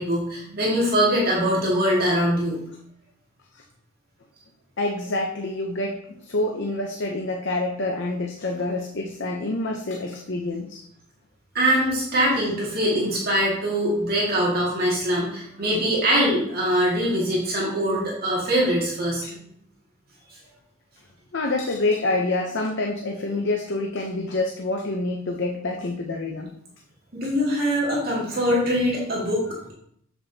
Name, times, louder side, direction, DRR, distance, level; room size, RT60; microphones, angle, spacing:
voice 1, 0.0-2.6 11.5-19.2 27.1-29.7, equal, 45° right, -5 dB, 2.1 m, -23 dB
voice 2, 4.8-10.8 19.2-19.3 21.3-26.5, left 2 dB, 55° left, 1 dB, 0.7 m, -27 dB
7.3 x 6.8 x 2.8 m, 0.69 s
head